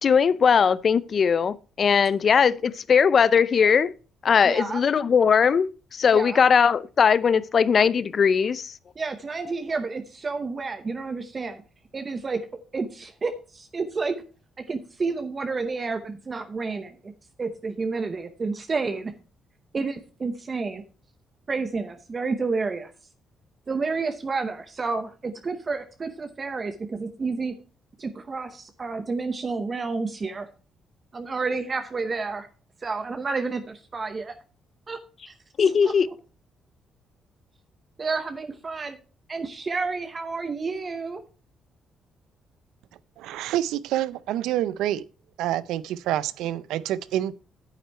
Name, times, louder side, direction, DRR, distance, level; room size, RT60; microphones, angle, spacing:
voice 1, 0.0-3.9 4.2-8.7 35.6-36.1, left 6 dB, 50° left, 0.5 m, -20 dB
voice 2, 4.4-4.8 6.1-6.4 9.0-11.6 11.9-12.4 12.7-14.2 14.7-17.1 17.4-19.1 19.7-20.8 21.5-22.9 23.7-27.5 28.0-30.5 31.1-32.5 32.8-34.4 34.9-35.0 35.3-35.4 38.0-39.0 39.3-41.2, right 4 dB, 35° right, 0.8 m, -30 dB
voice 3, 43.2-45.1 45.4-47.3, right 12 dB, 90° right, 0.5 m, -27 dB
9.1 x 8.2 x 4.4 m
cardioid pair, 90°, 0 cm